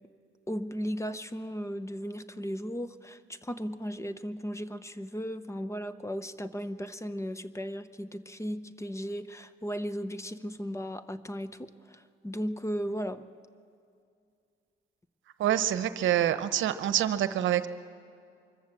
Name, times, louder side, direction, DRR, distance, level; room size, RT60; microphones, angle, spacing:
voice 1, 0.5-13.2, equal, 15° left, 12 dB, 0.8 m, -36 dB
voice 2, 15.4-17.7, right 11 dB, 75° right, 12 dB, 0.8 m, -26 dB
24.5 x 14.5 x 7.4 m, 2.3 s
cardioid pair, 90°, 20 cm